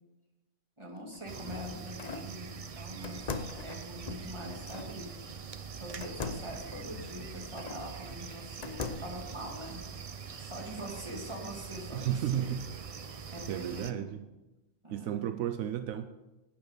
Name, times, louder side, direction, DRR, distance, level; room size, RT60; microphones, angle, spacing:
voice 1, 0.8-5.2 5.7-9.9 10.4-12.6 13.3-14.1 14.8-15.3, equal, 20° right, -1 dB, 2.3 m, -43 dB
sound 1, 1.0-2.3 3.0-4.9 6.0-7.8 8.3-9.2, left 4 dB, 40° left, 0.7 m, -41 dB
sound 2, 1.3-13.9, right 6 dB, 50° right, 0.4 m, -44 dB
voice 2, 11.9-12.6 13.5-14.3 14.9-16.1, right 11 dB, 80° right, 10 dB, 1.0 m, -33 dB
11.5 x 8.8 x 5.3 m, 1.1 s
omnidirectional pair, 1.4 m